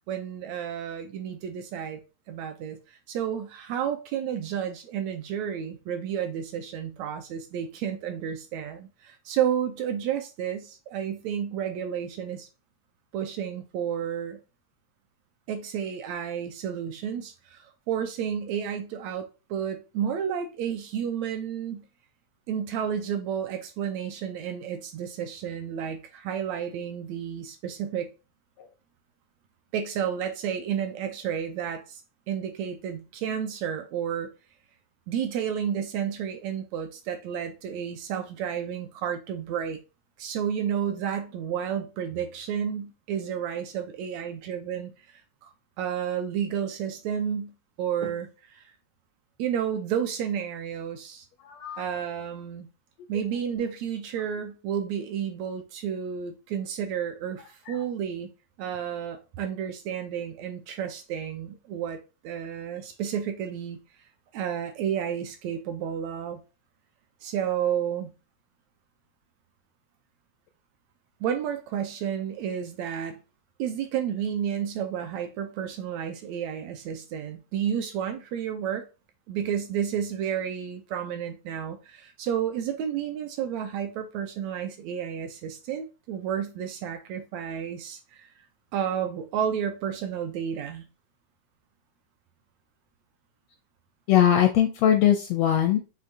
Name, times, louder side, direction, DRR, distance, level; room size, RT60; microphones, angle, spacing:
voice 1, 0.1-2.0 2.3-12.5 13.1-14.4 15.5-21.8 22.5-28.1 29.7-32.0 32.3-34.3 35.1-39.8 40.2-45.5 45.8-48.6 49.4-51.2 51.8-52.7 53.1-58.3 58.6-62.0 62.2-63.8 64.3-66.4 67.2-68.1 71.2-73.2 73.6-78.8 79.3-88.3 88.7-90.8, right 8 dB, 80° right, 1.7 m, -31 dB
voice 2, 51.4-51.8 57.7-57.8 94.1-95.8, left 10 dB, 80° left, 1.5 m, -21 dB
6.4 x 2.6 x 2.6 m
omnidirectional pair, 3.4 m